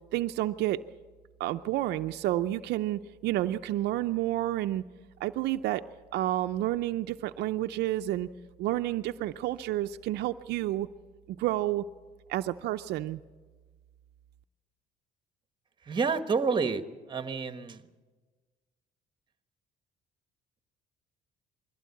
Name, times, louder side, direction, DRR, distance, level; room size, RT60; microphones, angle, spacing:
voice 1, 0.1-0.8 1.4-4.8 5.2-5.8 6.1-8.3 8.6-10.9 11.3-11.8 12.3-13.2, right 14 dB, 80° right, 9 dB, 0.5 m, -30 dB
voice 2, 15.9-16.8 17.1-17.8, right 5 dB, 25° right, 10 dB, 1.2 m, -28 dB
21.5 x 16.0 x 8.4 m, 1.4 s
cardioid pair, 110°, 17 cm